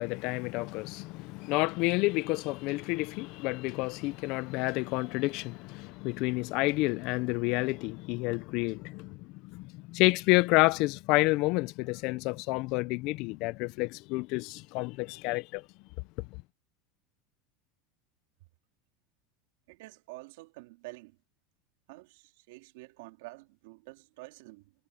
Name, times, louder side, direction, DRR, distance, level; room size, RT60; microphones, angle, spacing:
voice 1, 0.0-15.6, left 23 dB, 55° left, 0.4 m, -29 dB
voice 2, 19.7-21.2 21.9-24.7, right 22 dB, 75° right, 2.8 m, -48 dB
supercardioid pair, 145°, 0 cm